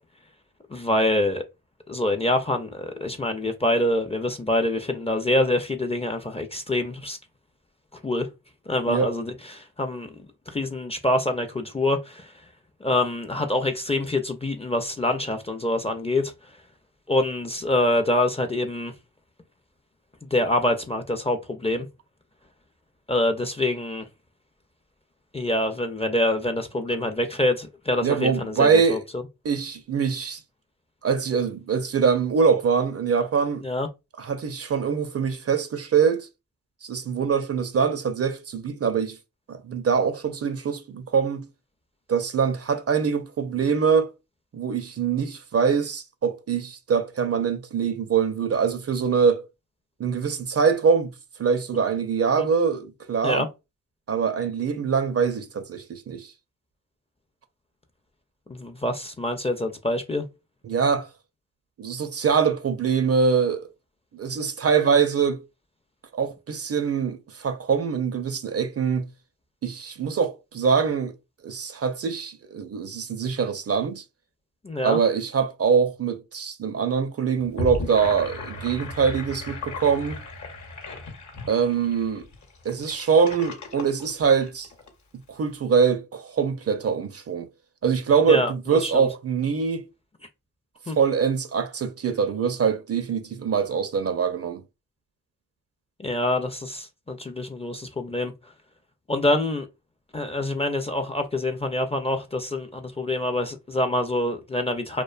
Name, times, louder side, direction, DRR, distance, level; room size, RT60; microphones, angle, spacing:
voice 1, 0.7-1.4 1.9-7.2 8.0-8.3 8.7-12.3 12.8-16.3 17.1-18.9 20.2-21.9 23.1-24.1 25.3-29.2 33.6-33.9 52.4-52.5 53.2-53.5 58.5-60.3 74.6-75.0 88.3-89.1 90.9-91.0 96.0-98.3 99.1-99.7 100.1-105.0, left 1 dB, 15° left, 0.4 m, -25 dB
voice 2, 28.0-29.0 29.4-30.4 31.0-33.7 34.2-36.3 36.8-39.2 39.5-41.5 42.1-44.1 44.5-49.5 50.0-51.1 51.4-53.5 54.1-56.3 60.6-61.1 61.8-63.7 64.1-65.4 66.1-69.1 69.6-71.2 71.4-74.0 74.8-80.2 81.5-82.2 82.6-84.7 85.3-87.5 87.8-89.8 90.9-94.6, right 6 dB, 40° right, 0.5 m, -23 dB
Gurgling / Sink (filling or washing), 77.4-84.9, left 3 dB, 50° left, 0.8 m, -36 dB
2.4 x 2.2 x 2.3 m
cardioid pair, 50°, 37 cm